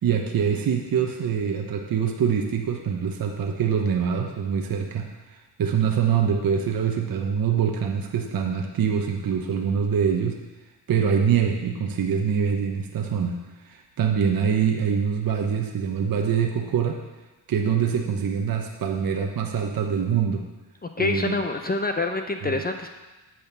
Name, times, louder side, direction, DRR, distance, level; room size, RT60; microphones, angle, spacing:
voice 1, 0.0-5.1 5.6-10.4 10.9-13.4 13.6-17.0 17.5-20.4 21.0-21.4 22.4-22.6, right 7 dB, 50° right, 2 dB, 1.1 m, -24 dB
voice 2, 21.0-22.9, left 2 dB, 20° left, 5 dB, 0.6 m, -26 dB
8.7 x 4.3 x 6.9 m, 1.1 s
supercardioid pair, 70°, 44 cm